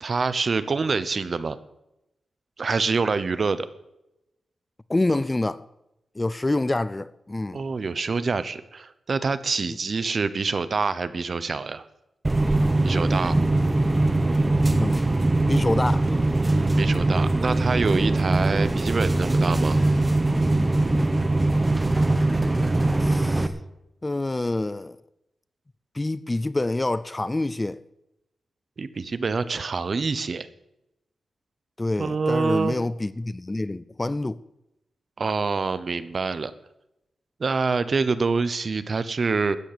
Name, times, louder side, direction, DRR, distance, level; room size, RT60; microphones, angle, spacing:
voice 1, 0.0-1.6 2.6-3.7 7.5-11.9 12.8-13.4 16.4-19.8 28.8-30.5 32.0-32.8 35.2-36.5 37.4-39.6, right 4 dB, 40° right, 0.8 m, -26 dB
voice 2, 4.9-5.6 6.2-7.6 14.7-15.0 15.5-16.1 23.0-23.5 24.0-25.0 25.9-27.8 31.8-34.4, left 2 dB, 15° left, 0.4 m, -26 dB
sound 1, 12.2-23.5, right 2 dB, 15° right, 1.0 m, -21 dB
13.5 x 9.3 x 6.8 m
wide cardioid pair, 135°, 0 cm